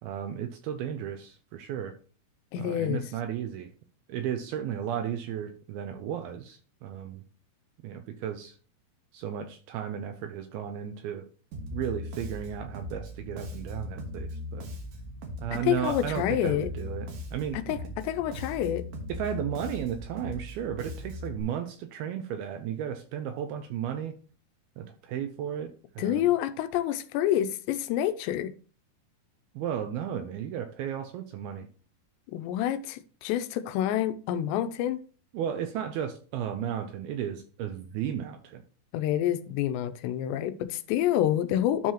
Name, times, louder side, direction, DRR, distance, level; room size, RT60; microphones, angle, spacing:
voice 1, 0.0-1.9 2.6-3.7 4.1-7.2 7.8-8.6 9.1-11.3 11.7-14.7 15.4-17.6 19.1-24.1 24.8-26.3 29.6-31.7 35.3-38.6, right 9 dB, 85° right, 2.2 m, -34 dB
voice 2, 2.5-3.0 15.5-16.7 17.5-18.8 26.0-28.5 32.3-35.0 38.9-41.9, left 11 dB, 90° left, 2.8 m, -28 dB
Bass guitar, 11.5-21.4, left 1 dB, 65° right, 2.1 m, -39 dB
12.0 x 4.7 x 2.9 m
omnidirectional pair, 5.0 m